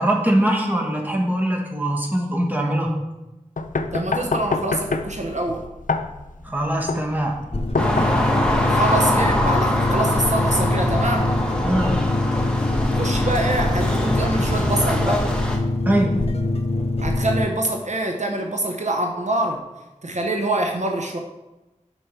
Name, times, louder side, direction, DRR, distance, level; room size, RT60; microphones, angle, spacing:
voice 1, 0.0-2.9 6.4-7.4 11.6-12.0 15.8-16.2, right 1 dB, 15° right, 0 dB, 1.4 m, -22 dB
sound 1, 3.6-8.6, left 3 dB, 90° left, 0.4 m, -27 dB
voice 2, 3.9-5.6 8.7-11.4 12.9-15.2 17.0-19.6 20.0-21.2, right 1 dB, 65° right, 3 dB, 0.7 m, -25 dB
sound 2, 7.5-17.5, left 2 dB, 50° left, 0.8 m, -24 dB
sound 3, 7.8-15.6, left 1 dB, 5° left, 1.2 m, -23 dB
6.7 x 4.7 x 5.6 m, 1.0 s
wide cardioid pair, 40°, 13 cm